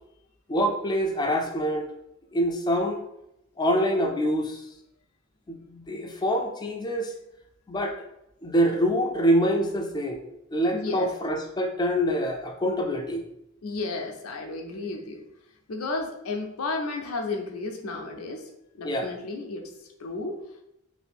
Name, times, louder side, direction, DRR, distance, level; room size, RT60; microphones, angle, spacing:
voice 1, 0.5-1.9 2.3-3.1 3.6-4.6 5.5-7.1 7.7-8.0 8.4-10.2 10.5-13.2 18.8-19.1, equal, 20° left, 3 dB, 0.4 m, -25 dB
voice 2, 10.7-11.1 13.6-15.2 15.7-18.5 18.7-19.7 20.0-20.4, left 3 dB, 90° left, 3 dB, 0.6 m, -33 dB
2.8 x 2.6 x 3.4 m, 0.83 s
head